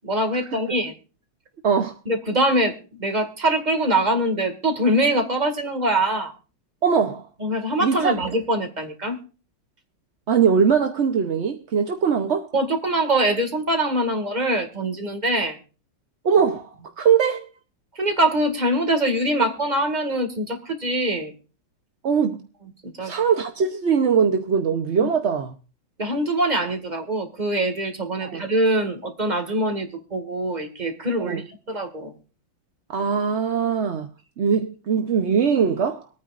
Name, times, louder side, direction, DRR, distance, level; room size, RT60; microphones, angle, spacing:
voice 1, 0.0-0.9 2.1-6.3 7.4-9.2 12.5-15.6 18.0-21.3 23.0-23.1 25.0-25.1 26.0-32.1, right 1 dB, 20° right, 2.0 m, -23 dB
voice 2, 1.6-2.0 6.8-7.3 7.8-8.1 10.3-12.5 16.2-17.5 19.4-19.5 22.0-22.4 23.0-25.5 28.2-28.4 31.2-31.4 32.9-34.1 34.4-36.0, right 6 dB, 50° right, 0.8 m, -21 dB
24.5 x 9.4 x 2.5 m
omnidirectional pair, 2.2 m